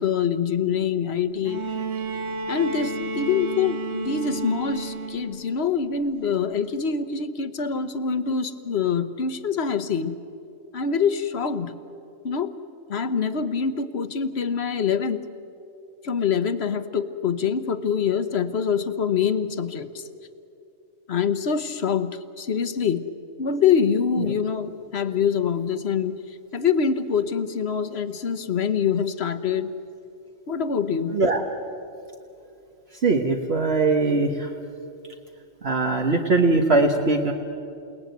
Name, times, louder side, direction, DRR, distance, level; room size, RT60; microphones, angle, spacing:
voice 1, 0.0-1.6 2.5-10.1 10.7-11.7 12.2-12.5 12.9-15.2 16.0-20.1 21.1-22.1 22.4-23.0 23.4-29.7 30.5-31.1, left 6 dB, 55° left, 11 dB, 1.2 m, -25 dB
Bowed string instrument, 1.4-5.5 6.7-6.8, right 3 dB, 80° right, 1.7 m, -31 dB
voice 2, 33.0-34.5 35.6-37.3, right 3 dB, 55° right, 2 dB, 1.5 m, -21 dB
28.5 x 18.5 x 9.3 m, 2.8 s
omnidirectional pair, 1.3 m